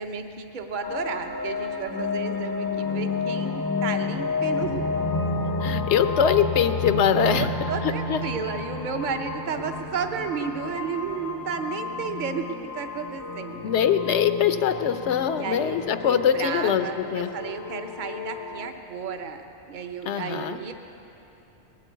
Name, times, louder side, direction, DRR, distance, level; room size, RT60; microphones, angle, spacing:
voice 1, 0.0-4.8 7.3-12.5 12.7-13.7 15.4-15.8 16.0-20.7, right 6 dB, 45° right, 6 dB, 0.9 m, -32 dB
sound 1, 0.8-18.7, left 3 dB, 25° left, 0.5 m, -31 dB
voice 2, 5.6-7.5 7.8-8.2 13.6-17.3 20.1-20.6, left 8 dB, 70° left, 10 dB, 0.9 m, -23 dB
19.5 x 8.4 x 8.1 m, 3.0 s
omnidirectional pair, 1.3 m